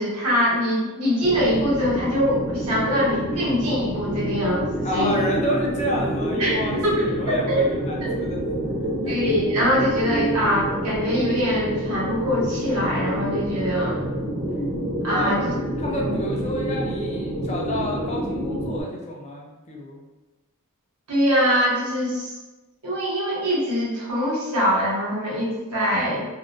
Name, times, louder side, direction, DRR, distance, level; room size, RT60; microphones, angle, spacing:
voice 1, 0.0-5.2 6.4-6.5 6.8-6.9 7.3-7.5 9.1-14.0 15.0-15.4 15.9-16.2 21.1-22.3 22.8-26.3, equal, 90° right, -6 dB, 0.9 m, -23 dB
sound 1, 1.2-18.8, right 1 dB, 50° right, 0.6 m, -27 dB
voice 2, 4.8-8.4 8.8-9.2 15.1-15.3 15.8-20.0, equal, 30° left, -1 dB, 0.4 m, -29 dB
2.3 x 2.1 x 2.5 m, 1.1 s
head